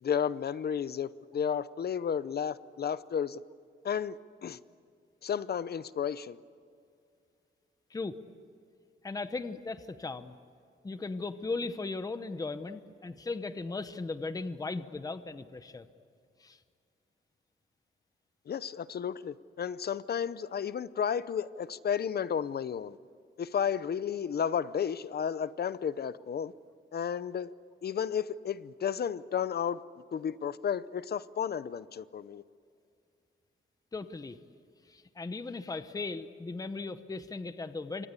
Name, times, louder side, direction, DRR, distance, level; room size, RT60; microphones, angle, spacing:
voice 1, 0.0-3.4 3.8-4.6 5.2-6.4 18.5-23.0 23.4-26.5 26.9-27.5 27.8-29.8 30.1-32.4, left 8 dB, 50° left, 0.7 m, -32 dB
voice 2, 9.0-10.3 10.8-15.9 16.4-16.6 33.9-34.4 34.9-38.1, left 3 dB, 15° left, 0.9 m, -37 dB
28.5 x 25.0 x 8.3 m
wide cardioid pair, 165°, 21 cm